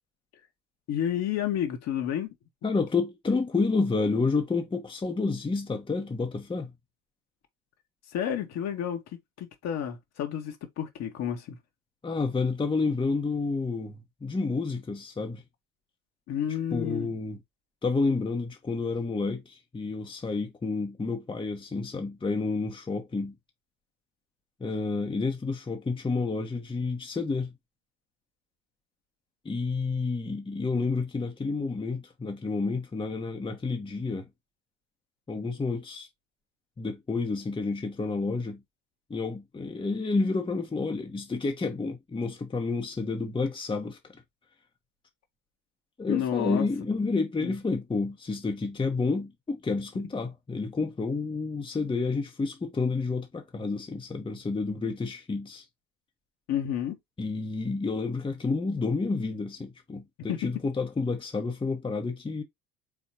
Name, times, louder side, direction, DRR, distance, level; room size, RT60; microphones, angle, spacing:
voice 1, 0.9-2.3 8.1-9.0 9.4-11.6 16.3-17.1 46.1-46.7 47.4-47.5 56.5-57.0 60.3-60.5, left 10 dB, 50° left, 1.7 m, -30 dB
voice 2, 2.6-6.7 12.0-15.4 16.7-17.4 17.8-23.3 24.6-27.5 29.4-34.3 35.3-36.1 36.8-38.6 39.1-44.2 46.0-55.6 57.2-62.4, left 3 dB, 15° left, 1.2 m, -30 dB
4.3 x 4.1 x 2.9 m
figure-of-eight pair, 65°, 33 cm